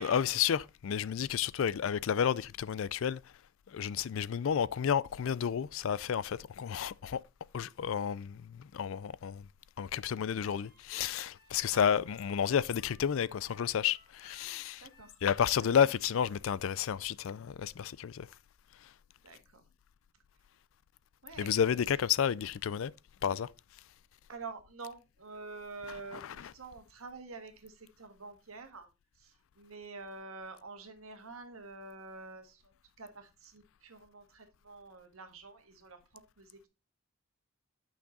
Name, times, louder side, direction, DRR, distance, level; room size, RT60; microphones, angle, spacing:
voice 1, 0.0-3.2 3.7-7.2 7.5-9.5 9.8-14.9 15.2-18.3 18.8-18.9 21.4-22.9 23.2-23.5 26.1-26.5, left 8 dB, 75° left, 0.4 m, -31 dB
Harmonica, 10.6-16.1, left 2 dB, 55° left, 4.3 m, -64 dB
voice 2, 14.8-15.2 15.6-15.8 19.2-19.7 21.2-21.6 24.3-28.9 29.1-36.7, right 3 dB, 90° right, 1.5 m, -48 dB
8.7 x 5.9 x 4.0 m
head